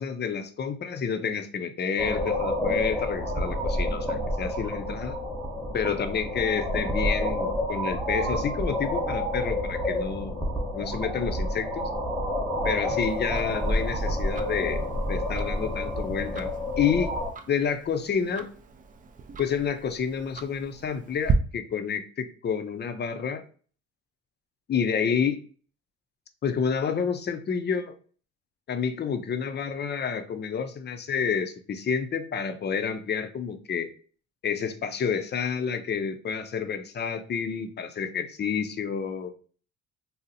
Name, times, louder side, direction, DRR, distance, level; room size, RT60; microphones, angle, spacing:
voice 1, 0.0-5.2 5.7-10.4 10.7-11.9 12.7-14.8 15.1-16.5 16.8-17.1 17.5-18.5 19.4-23.4 24.7-25.4 26.4-27.9 28.7-33.9 34.4-39.3, left 6 dB, 35° left, 9 dB, 0.5 m, -29 dB
sound 1, 2.0-17.3, left 1 dB, ahead, 0.9 m, -29 dB
Tick-tock, 13.0-21.3, right 7 dB, 30° right, 0.4 m, -38 dB
2.6 x 2.0 x 4.0 m, 0.42 s
cardioid pair, 90°, 30 cm